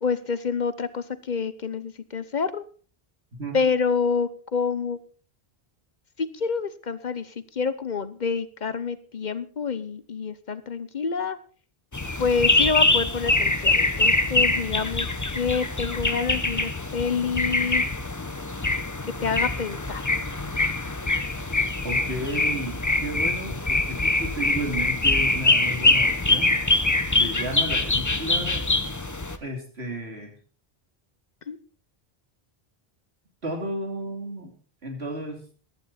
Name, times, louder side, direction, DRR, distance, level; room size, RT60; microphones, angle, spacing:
voice 1, 0.0-2.6 3.5-5.0 6.2-11.4 12.2-17.9 19.2-20.0 27.1-27.3 31.5-31.6, left 5 dB, 50° left, 14 dB, 0.9 m, -27 dB
sound 1, 11.9-29.4, left 2 dB, 20° left, 0.8 m, -24 dB
voice 2, 21.8-26.8 27.2-28.7 29.4-30.3 33.4-34.5 34.8-35.6, right 1 dB, 90° right, 3 dB, 3.2 m, -33 dB
15.0 x 12.0 x 4.1 m, 0.40 s
omnidirectional pair, 1.0 m